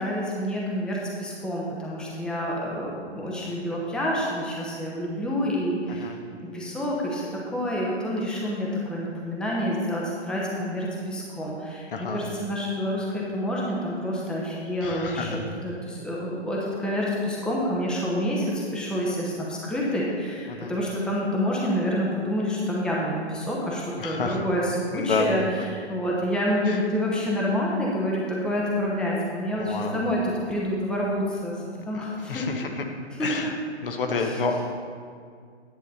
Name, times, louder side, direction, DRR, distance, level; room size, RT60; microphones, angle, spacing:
voice 1, 0.0-6.1 6.5-31.6 31.9-32.5 33.2-33.5 34.1-34.4, equal, ahead, -4 dB, 0.9 m, -28 dB
voice 2, 14.8-15.4 20.5-20.7 24.0-24.4 24.9-25.4 26.7-26.8 29.6-30.0 31.9-32.0 32.3-32.7 33.2-33.5 33.8-34.6, left 4 dB, 50° left, 4 dB, 1.2 m, -29 dB
10.5 x 8.0 x 4.1 m, 2.1 s
figure-of-eight pair, 125°, 34 cm